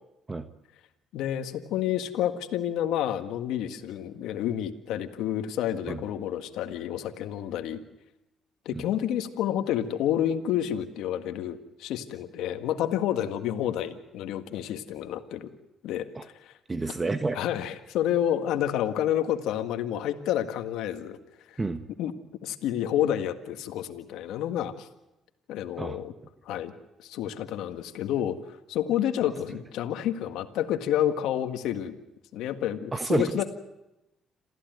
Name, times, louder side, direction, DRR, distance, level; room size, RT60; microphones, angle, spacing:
voice 1, 1.1-7.8 8.7-15.5 15.8-16.5 17.3-21.2 21.5-21.6 22.0-22.1 22.4-24.9 25.5-26.1 26.5-26.7 27.0-28.4 28.7-31.9 32.3-33.4, left 11 dB, 85° left, 8 dB, 1.7 m, -29 dB
voice 2, 16.7-17.4 21.6-21.8 25.8-26.0 32.9-33.2, right 3 dB, 25° right, 9 dB, 1.3 m, -29 dB
28.0 x 15.0 x 9.3 m, 0.92 s
cardioid pair, 80°, 0 cm